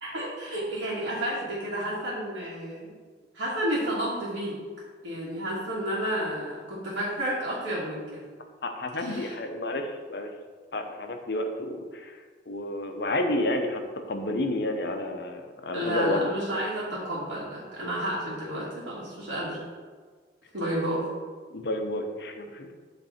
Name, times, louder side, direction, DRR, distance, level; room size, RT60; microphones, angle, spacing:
voice 1, 0.0-2.9 3.3-4.6 5.0-8.0 9.0-9.3 15.7-19.6 20.5-21.0, right 1 dB, 85° right, -9 dB, 1.6 m, -31 dB
voice 2, 8.6-10.3 10.7-12.2 12.5-16.3 21.5-22.7, left 1 dB, 60° left, 5 dB, 0.7 m, -30 dB
8.3 x 3.3 x 4.2 m, 1.5 s
head